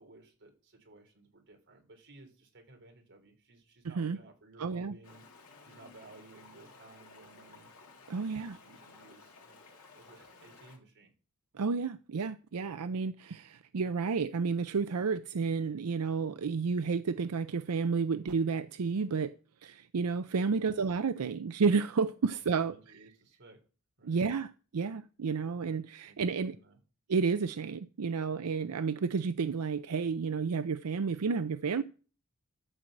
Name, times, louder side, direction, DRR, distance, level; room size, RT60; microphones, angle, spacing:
voice 1, 0.0-5.2 5.6-7.7 8.2-9.6 9.9-11.1 20.6-20.8 22.3-23.6 24.0-24.2 26.0-26.8, right 2 dB, 55° right, 3.4 m, -57 dB
voice 2, 3.8-4.2 4.6-5.0 8.1-8.6 11.5-19.3 19.6-22.7 24.0-26.6 27.1-31.8, right 5 dB, 90° right, 0.5 m, -31 dB
Stream, 5.0-10.8, left 3 dB, 75° left, 3.1 m, -56 dB
13.0 x 4.7 x 7.6 m
head